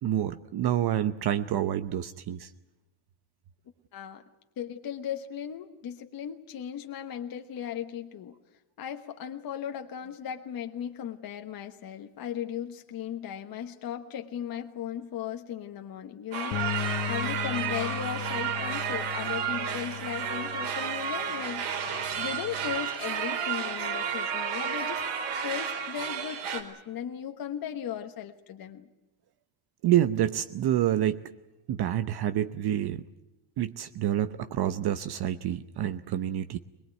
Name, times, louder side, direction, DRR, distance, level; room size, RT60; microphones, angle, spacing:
voice 1, 0.0-2.5 29.8-31.2 31.7-33.0 33.6-36.6, right 11 dB, 50° right, 11 dB, 0.8 m, -27 dB
voice 2, 3.9-4.2 4.6-8.4 8.8-25.0 25.4-28.9, left 9 dB, 45° left, 5 dB, 1.3 m, -37 dB
sound 1, 16.3-26.6, right 7 dB, 80° right, 4.1 m, -32 dB
Bass guitar, 16.5-22.8, left 11 dB, 65° left, 0.8 m, -38 dB
22.5 x 21.5 x 9.2 m, 0.97 s
cardioid pair, 150°, 48 cm